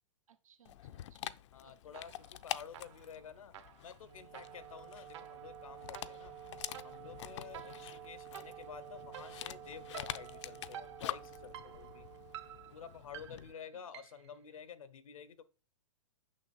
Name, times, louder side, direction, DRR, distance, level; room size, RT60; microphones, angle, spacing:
voice 1, 0.3-1.4 1.6-2.2 7.3-7.6 13.3-13.4 13.7-13.8, right 7 dB, 85° right, 8 dB, 1.2 m, -67 dB
Dog, 0.6-13.5, left 13 dB, 60° left, 0.5 m, -47 dB
voice 2, 1.5-6.4 6.8-12.1 12.7-15.4, left 7 dB, 90° left, 15 dB, 1.0 m, -51 dB
sound 1, 1.9-2.4 2.7-14.4, right 10 dB, 60° right, 1.0 m, -52 dB
Wind instrument woodwind instrument, 4.0-13.3, right 12 dB, 25° right, 0.5 m, -52 dB
6.5 x 5.8 x 4.4 m, 0.35 s
hypercardioid pair, 135°, 17 cm